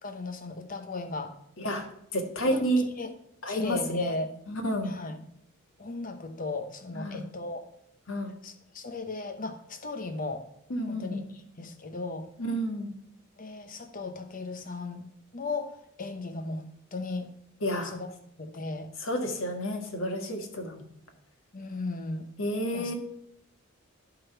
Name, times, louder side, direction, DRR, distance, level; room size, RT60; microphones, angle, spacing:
voice 1, 0.0-1.4 2.5-3.1 3.5-4.3 4.8-5.2 5.8-7.6 8.4-10.5 10.9-12.3 13.4-15.1 15.3-17.3 17.8-18.1 18.4-18.9 21.5-22.3 22.7-22.9, left 3 dB, 40° left, 8 dB, 0.9 m, -36 dB
voice 2, 1.6-2.8 3.4-4.1 4.5-4.9 6.9-7.2 8.1-8.3 10.7-11.2 12.4-12.9 17.6-17.9 19.0-20.8 22.4-22.9, equal, 70° left, 4 dB, 1.6 m, -30 dB
11.5 x 3.9 x 5.8 m, 0.75 s
head